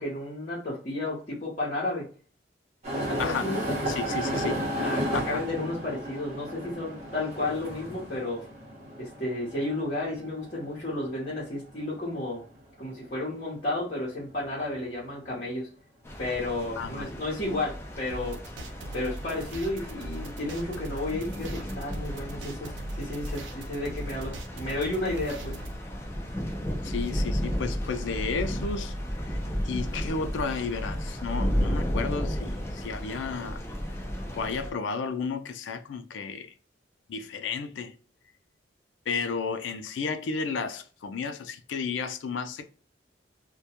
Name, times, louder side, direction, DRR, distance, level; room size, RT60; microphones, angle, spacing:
voice 1, 0.0-2.1 3.1-3.7 4.7-8.5 9.0-12.4 12.8-15.7 16.2-18.4 18.9-25.6, left 2 dB, 40° left, 0.9 m, -32 dB
sound 1, 2.8-12.4 13.0-13.1 13.9-14.0, right 1 dB, 35° right, 0.9 m, -34 dB
voice 2, 3.9-4.5 5.1-5.2 16.8-17.1 26.8-28.9 29.3-29.4 29.6-33.6 34.3-36.5 37.1-37.9 39.1-42.7, left 5 dB, 85° left, 0.4 m, -32 dB
sound 2, 16.0-34.7, equal, 15° left, 0.4 m, -33 dB
sound 3, 18.1-25.8, right 1 dB, 85° right, 0.4 m, -41 dB
2.2 x 2.1 x 2.8 m
head